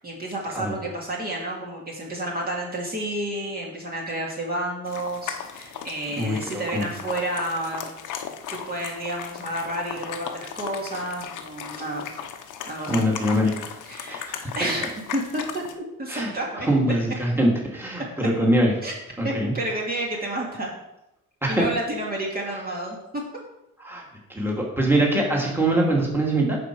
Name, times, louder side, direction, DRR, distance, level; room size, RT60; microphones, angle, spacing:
voice 1, 0.0-7.9 8.5-12.0 12.7-13.0 13.8-14.3 14.6-15.6 16.0-16.7 18.8-18.9 19.2-20.7 21.5-23.2, right 1 dB, 30° right, -2 dB, 2.2 m, -30 dB
sound 1, 4.9-15.7, left 8 dB, 85° left, 0.9 m, -37 dB
voice 2, 6.2-6.9 12.9-13.7 14.1-14.5 16.1-16.3 16.7-18.7 19.2-19.5 21.4-21.7 23.8-24.0 24.3-26.6, right 1 dB, 5° right, -2 dB, 2.4 m, -23 dB
11.0 x 4.9 x 4.7 m, 0.90 s
cardioid pair, 90°, 30 cm